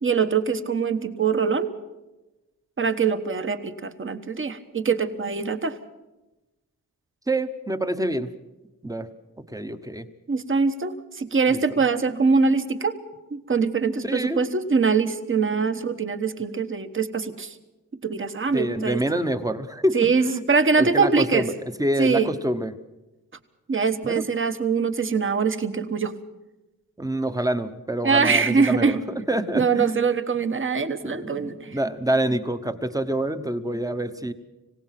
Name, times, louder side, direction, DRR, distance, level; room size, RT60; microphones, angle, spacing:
voice 1, 0.0-1.7 2.8-5.8 10.3-12.9 13.3-17.5 18.0-19.0 19.9-21.5 22.0-22.3 23.7-26.1 28.0-29.0 29.5-31.8, right 5 dB, 35° right, 11 dB, 1.2 m, -23 dB
voice 2, 7.3-8.3 8.8-9.1 9.5-10.0 11.5-11.6 14.0-14.4 18.5-20.4 20.8-22.7 24.0-24.2 27.0-29.0 29.3-30.0 31.0-34.3, right 1 dB, 10° right, 10 dB, 0.9 m, -26 dB
26.0 x 17.5 x 5.9 m, 1.0 s
wide cardioid pair, 180°, 35 cm